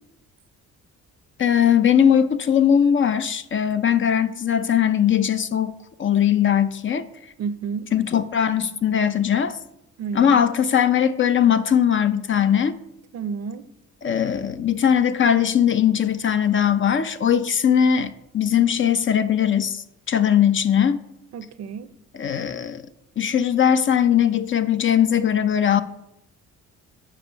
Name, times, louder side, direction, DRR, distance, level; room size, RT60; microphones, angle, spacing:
voice 1, 1.4-5.7 6.0-7.0 7.9-9.6 10.1-12.7 14.0-21.0 22.1-22.8 23.2-25.8, left 8 dB, 40° left, 0.5 m, -20 dB
voice 2, 7.4-7.9 10.0-10.4 13.1-13.7 21.3-21.9, right 6 dB, 55° right, 0.6 m, -31 dB
7.1 x 4.7 x 5.7 m
cardioid pair, 90°, 30 cm